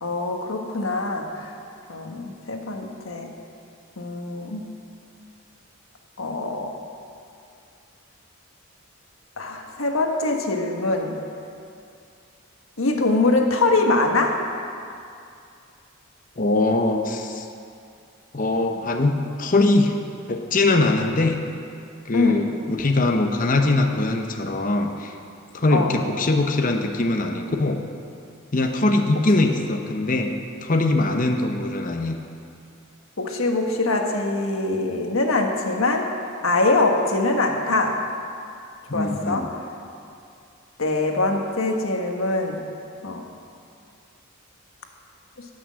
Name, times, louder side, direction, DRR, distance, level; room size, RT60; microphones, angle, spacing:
voice 1, 0.0-1.4 1.9-3.3 4.0-4.7 6.2-6.7 9.4-11.2 12.8-14.4 22.1-22.4 25.7-25.9 33.2-36.1 36.4-38.0 38.9-39.5 40.8-42.6 43.0-43.2 45.4-45.5, left 2 dB, 80° left, 2 dB, 1.5 m, -23 dB
voice 2, 16.4-17.5 18.3-19.9 20.3-21.4 22.0-25.1 25.5-27.8 28.5-32.2 38.9-39.5, left 2 dB, 40° left, 3 dB, 0.9 m, -22 dB
17.5 x 6.3 x 7.5 m, 2.5 s
head